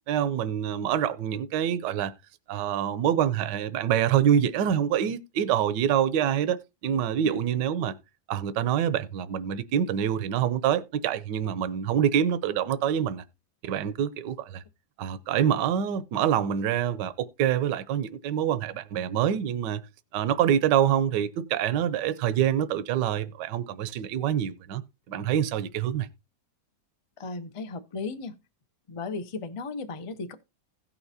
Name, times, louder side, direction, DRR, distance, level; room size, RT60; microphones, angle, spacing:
voice 1, 0.1-2.1 2.5-6.6 6.8-7.9 8.3-13.2 13.6-14.6 15.0-19.8 20.1-24.8 25.1-26.1, right 9 dB, 80° right, 1.3 m, -26 dB
voice 2, 27.2-28.3 28.9-30.3, left 4 dB, 55° left, 0.3 m, -35 dB
16.5 x 5.8 x 2.7 m
omnidirectional pair, 1.9 m